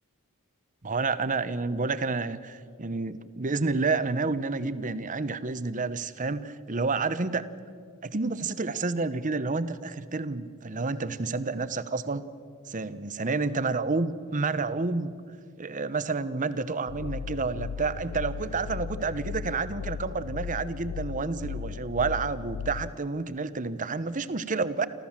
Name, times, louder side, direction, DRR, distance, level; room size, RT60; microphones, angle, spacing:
voice 1, 0.8-7.5 8.0-12.3 12.6-15.1 15.6-24.9, right 3 dB, 35° right, 13 dB, 0.8 m, -29 dB
sound 1, 16.9-22.9, left 6 dB, 75° left, 0.4 m, -36 dB
29.0 x 13.5 x 7.3 m, 2.1 s
head